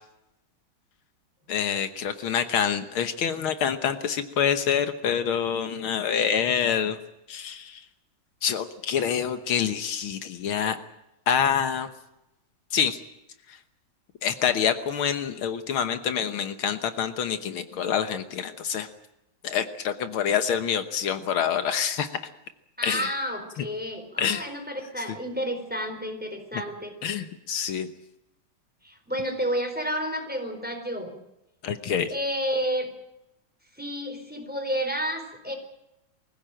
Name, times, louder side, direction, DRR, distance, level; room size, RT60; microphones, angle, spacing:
voice 1, 1.5-7.0 7.3-7.8 8.4-10.8 11.3-11.9 12.7-13.0 14.2-18.9 19.4-22.1 22.8-23.1 24.2-24.5 27.0-27.9 31.6-32.1, left 8 dB, 80° left, 10 dB, 2.0 m, -26 dB
voice 2, 22.8-27.0 28.8-31.1 32.1-32.9 33.7-35.6, equal, 5° right, 5 dB, 4.2 m, -30 dB
24.5 x 16.0 x 9.0 m, 0.90 s
omnidirectional pair, 2.3 m